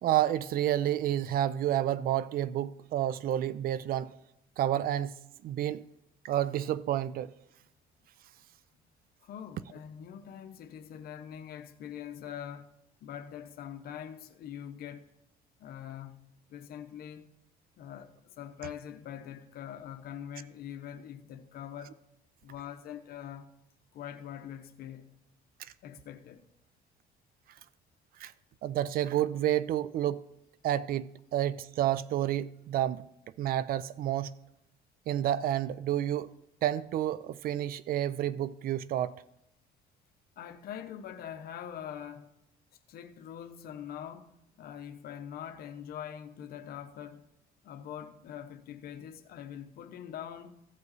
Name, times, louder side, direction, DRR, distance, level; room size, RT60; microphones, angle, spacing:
voice 1, 0.0-4.1 4.6-5.1 5.4-5.8 6.2-7.3 28.2-28.3 28.6-30.2 30.6-33.1 33.4-34.3 35.1-36.3 36.6-39.1, right 12 dB, 60° right, 0.4 m, -30 dB
voice 2, 9.2-12.7 13.0-15.1 15.6-17.3 17.8-21.9 22.4-23.5 23.9-25.1 25.8-26.5 40.4-42.3 42.9-47.3 47.6-50.6, left 9 dB, 65° left, 0.8 m, -43 dB
15.5 x 5.4 x 4.0 m
cardioid pair, 110°, 17 cm